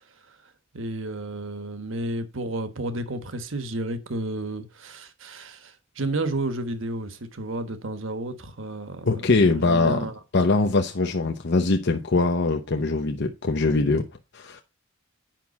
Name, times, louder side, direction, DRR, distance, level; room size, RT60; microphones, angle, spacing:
voice 1, 0.7-10.2, right 2 dB, 65° right, 1.3 m, -32 dB
voice 2, 9.0-10.1 10.3-14.1 14.3-14.6, left 3 dB, 55° left, 0.8 m, -22 dB
9.1 x 6.0 x 4.2 m
head